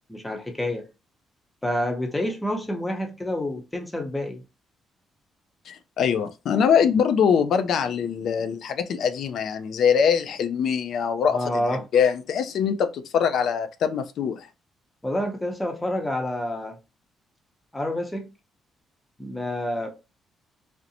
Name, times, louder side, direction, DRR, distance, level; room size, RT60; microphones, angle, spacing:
voice 1, 0.1-0.8 1.6-4.4 11.3-11.8 15.0-16.8 17.7-18.3 19.2-19.9, left 1 dB, 10° left, 0.7 m, -28 dB
voice 2, 5.7-11.6 11.9-14.5, left 7 dB, 70° left, 0.3 m, -23 dB
2.5 x 2.1 x 2.7 m
cardioid pair, 90°, 0 cm